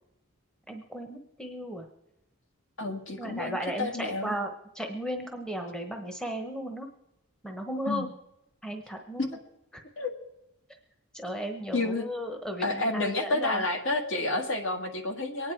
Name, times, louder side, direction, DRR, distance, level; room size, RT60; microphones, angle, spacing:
voice 1, 0.7-1.9 3.2-6.9 7.4-8.1 8.6-9.4 11.1-13.6, equal, 5° left, 4 dB, 1.0 m, -35 dB
voice 2, 2.8-4.4 7.9-8.1 9.2-9.4 10.0-10.1 11.7-12.1 12.6-15.5, left 2 dB, 60° left, 3 dB, 1.9 m, -30 dB
23.5 x 9.6 x 4.6 m, 0.89 s
head